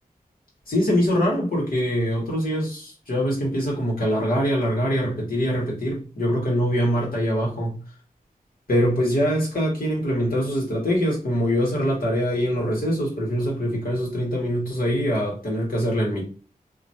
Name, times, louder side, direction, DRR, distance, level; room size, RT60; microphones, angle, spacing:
voice 1, 0.7-7.8 8.7-16.2, equal, 70° left, 1.8 m, -23 dB
3.0 x 2.9 x 2.8 m
wide cardioid pair, 105°, 15 cm